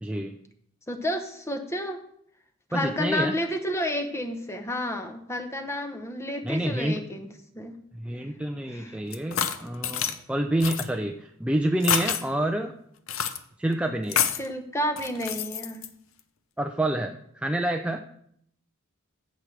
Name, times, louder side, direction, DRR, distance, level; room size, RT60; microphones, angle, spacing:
voice 1, 0.0-0.4 2.7-3.3 6.4-7.0 7.9-12.7 13.6-14.3 16.6-18.0, right 1 dB, 5° right, 5 dB, 0.3 m, -28 dB
voice 2, 0.9-2.0 2.7-7.3 7.5-7.7 8.7-9.0 14.4-15.9, left 1 dB, 10° left, 6 dB, 0.8 m, -30 dB
sound 1, 9.1-10.2 10.6-10.9 11.8-12.2 13.1-13.4 14.1-14.5 15.0-15.9, left 8 dB, 65° left, 0.7 m, -27 dB
14.5 x 6.2 x 3.3 m, 0.69 s
head